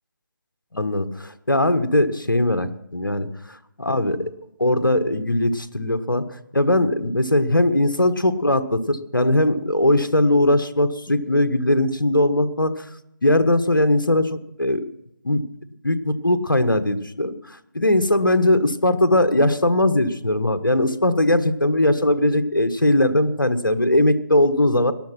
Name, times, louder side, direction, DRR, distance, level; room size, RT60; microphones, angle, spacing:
voice 1, 0.7-4.3 4.6-12.9 13.2-14.8 15.2-15.4 15.8-24.9, left 1 dB, 80° left, 9 dB, 1.4 m, -20 dB
18.5 x 12.0 x 5.9 m, 0.81 s
figure-of-eight pair, 155°, 11 cm